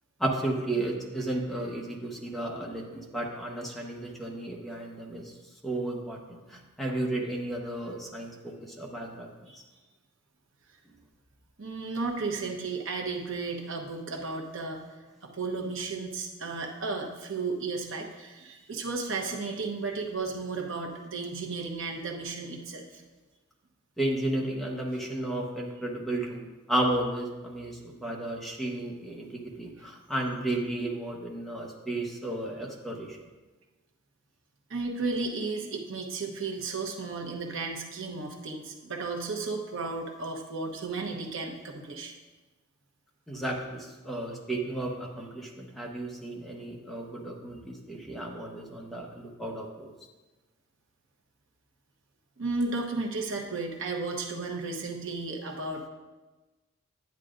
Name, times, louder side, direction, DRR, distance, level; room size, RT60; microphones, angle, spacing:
voice 1, 0.2-5.3 5.6-9.3 24.0-26.4 26.7-33.2 43.3-49.9, right 1 dB, ahead, -2 dB, 1.0 m, -33 dB
voice 2, 11.6-14.8 15.2-23.0 34.7-42.1 52.4-55.9, right 3 dB, 65° right, 1 dB, 1.1 m, -34 dB
10.5 x 9.1 x 2.5 m, 1.2 s
head